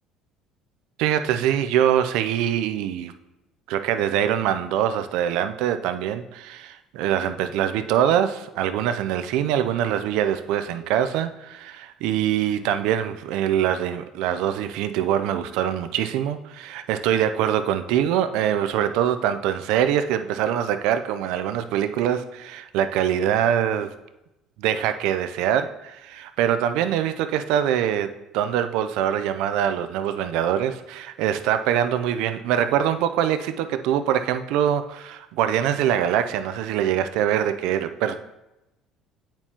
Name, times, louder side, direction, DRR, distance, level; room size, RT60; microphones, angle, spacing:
voice 1, 1.0-3.1 3.7-23.9 24.6-28.1 28.3-38.2, right 10 dB, 80° right, 9 dB, 0.4 m, -23 dB
8.7 x 4.4 x 2.9 m, 0.93 s
cardioid pair, 105°, 0 cm